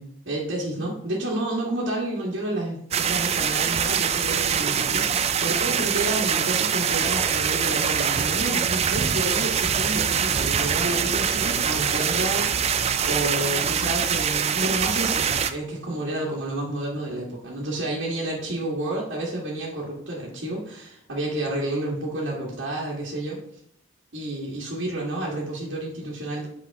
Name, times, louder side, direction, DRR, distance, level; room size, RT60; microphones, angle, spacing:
voice 1, 0.0-23.4 24.1-26.5, right 1 dB, 70° right, -7 dB, 1.7 m, -30 dB
sound 1, 2.9-15.5, right 7 dB, 30° right, 0.4 m, -24 dB
8.4 x 5.5 x 3.5 m, 0.71 s
head